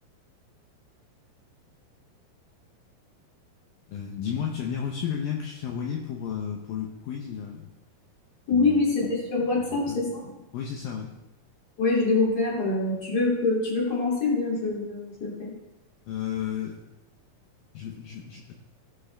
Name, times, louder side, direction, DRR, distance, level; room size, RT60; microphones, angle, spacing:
voice 1, 3.9-7.7 8.5-8.8 9.6-10.0 10.5-11.1 16.1-16.8 17.7-18.5, left 8 dB, 75° left, 0 dB, 2.4 m, -33 dB
voice 2, 8.5-10.2 11.8-15.5, left 3 dB, 25° left, -4 dB, 3.0 m, -25 dB
18.0 x 6.1 x 3.4 m, 1.0 s
omnidirectional pair, 4.5 m